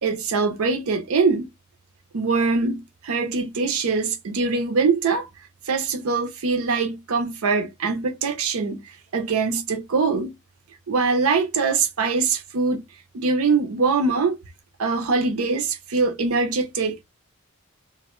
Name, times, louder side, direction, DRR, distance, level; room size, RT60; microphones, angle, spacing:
voice 1, 0.0-1.5 2.1-5.3 5.7-8.8 9.1-10.3 10.9-12.8 13.1-14.4 14.8-17.0, right 4 dB, 80° right, 0.5 m, -23 dB
2.5 x 2.0 x 3.0 m
head